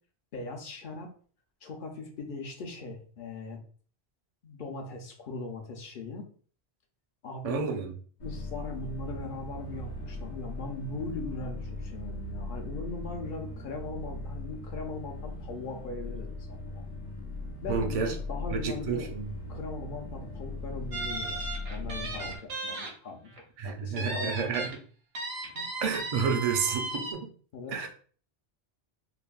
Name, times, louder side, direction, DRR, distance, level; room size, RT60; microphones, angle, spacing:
voice 1, 0.3-1.1 1.6-3.6 4.4-6.3 7.2-7.7 8.2-16.8 17.6-19.1 19.5-21.4 21.7-23.3 23.6-24.7 25.5-25.8 27.5-27.9, left 3 dB, 60° left, 2 dB, 0.7 m, -39 dB
voice 2, 7.4-7.9 17.7-18.1 18.5-19.3 23.6-24.7 25.8-27.3 27.7-27.9, right 6 dB, 50° right, 4 dB, 0.4 m, -30 dB
sound 1, 8.2-22.4, left 2 dB, 90° left, 1.0 m, -39 dB
sound 2, 20.9-22.9 23.3-23.4 24.0-24.7 25.1-27.1, right 2 dB, 75° right, 1.0 m, -35 dB
3.2 x 2.1 x 2.3 m, 0.43 s
omnidirectional pair, 1.1 m